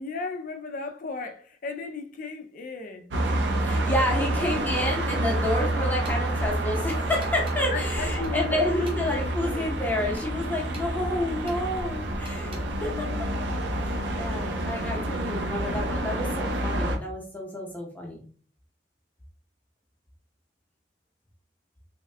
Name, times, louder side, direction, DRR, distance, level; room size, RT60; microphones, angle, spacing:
voice 1, 0.0-3.1 7.7-9.7, left 4 dB, 50° left, 0.4 m, -35 dB
sound 1, 3.1-17.0, right 1 dB, 90° right, 0.6 m, -28 dB
voice 2, 3.6-13.3 13.8-18.2, left 1 dB, 10° left, 0.8 m, -30 dB
sound 2, 5.3-5.6 6.0-6.2 7.2-7.6 8.2-9.3 10.2-10.9 11.5-11.6 12.2-12.6, equal, 30° right, 1.1 m, -47 dB
3.5 x 2.3 x 3.2 m
head